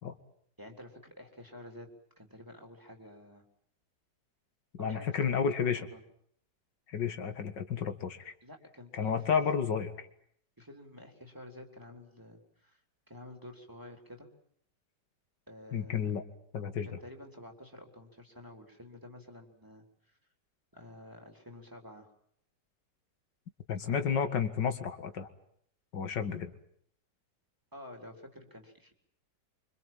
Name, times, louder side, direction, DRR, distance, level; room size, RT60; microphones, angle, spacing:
voice 1, 0.6-1.9 2.2-3.4 4.8-6.0 8.4-9.2 10.6-12.8 13.1-14.3 15.5-16.1 16.8-20.2 20.7-22.1 23.8-24.0 27.7-28.9, left 1 dB, 10° right, 3 dB, 3.9 m, -50 dB
voice 2, 4.8-5.8 6.9-8.3 8.9-10.1 15.7-16.2 16.5-16.9 23.7-25.3 25.9-26.5, left 7 dB, 90° left, 8 dB, 2.4 m, -31 dB
26.0 x 25.5 x 7.6 m, 0.68 s
omnidirectional pair, 1.9 m